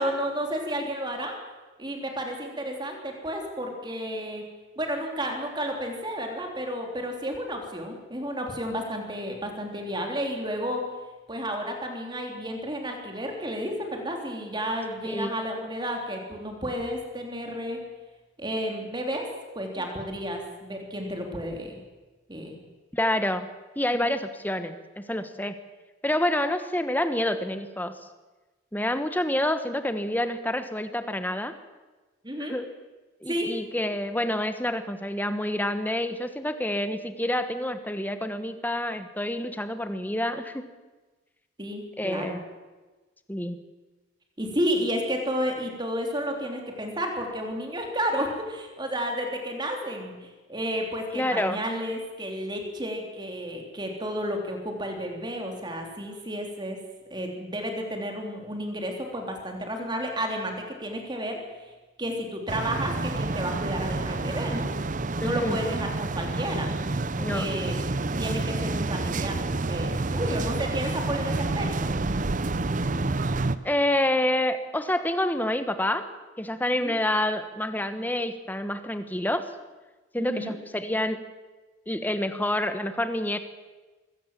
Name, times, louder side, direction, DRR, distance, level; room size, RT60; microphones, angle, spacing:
voice 1, 0.0-1.4 1.8-4.4 4.8-10.8 11.3-17.8 18.4-19.3 19.6-21.8 22.3-22.6 23.9-24.1 32.2-32.6 33.3-33.5 41.6-42.4 44.4-56.8 57.1-61.4 62.0-64.7 65.2-66.7 67.3-67.8 68.2-69.4 69.7-71.9 76.8-77.0 80.2-80.6, equal, 20° right, 2 dB, 3.6 m, -31 dB
voice 2, 22.9-23.5 23.8-25.6 26.0-28.0 28.7-31.5 32.5-32.7 33.2-40.7 42.0-42.4 43.3-43.6 51.1-51.6 65.2-65.6 67.2-67.5 73.6-76.1 76.4-79.5 80.1-81.3 81.9-83.4, left 1 dB, 10° left, 9 dB, 1.2 m, -28 dB
sound 1, 62.5-73.6, right 2 dB, 40° right, 0.7 m, -29 dB
23.5 x 17.0 x 7.6 m, 1.2 s
head